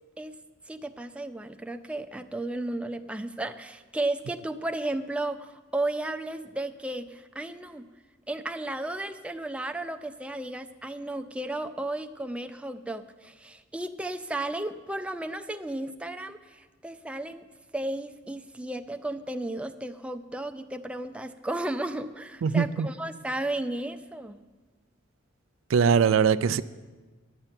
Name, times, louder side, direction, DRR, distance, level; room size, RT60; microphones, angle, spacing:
voice 1, 0.7-7.9 8.3-17.4 17.7-24.4, right 2 dB, 5° right, 0.4 m, -34 dB
voice 2, 22.4-22.9 25.7-26.6, right 6 dB, 90° right, 0.4 m, -21 dB
10.0 x 6.7 x 9.0 m
head